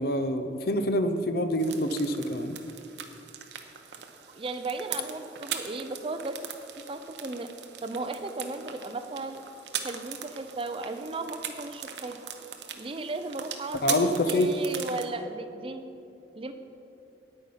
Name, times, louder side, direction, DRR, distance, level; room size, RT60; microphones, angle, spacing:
voice 1, 0.0-2.6 13.8-14.5, left 1 dB, 55° left, 8 dB, 0.6 m, -26 dB
sound 1, 1.6-15.1, right 9 dB, 70° right, 0.8 m, -40 dB
voice 2, 4.3-6.4 6.9-7.5 7.8-9.4 9.8-12.2 12.8-15.8 16.4-16.5, right 3 dB, 30° right, 8 dB, 0.5 m, -35 dB
9.4 x 8.9 x 5.6 m, 2.7 s
head